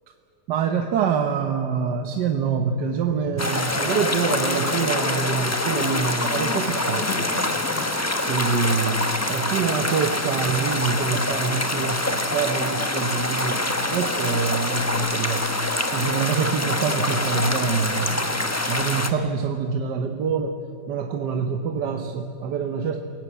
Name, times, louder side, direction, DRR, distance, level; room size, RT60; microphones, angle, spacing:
voice 1, 0.5-7.5 8.3-15.5 15.9-20.6 20.9-23.0, right 5 dB, 70° right, 6 dB, 1.5 m, -26 dB
sound 1, 3.4-8.6, left 10 dB, 70° left, 1.3 m, -34 dB
sound 2, 3.4-19.1, left 2 dB, 10° left, 0.8 m, -25 dB
27.5 x 17.0 x 8.1 m, 2.8 s
omnidirectional pair, 2.0 m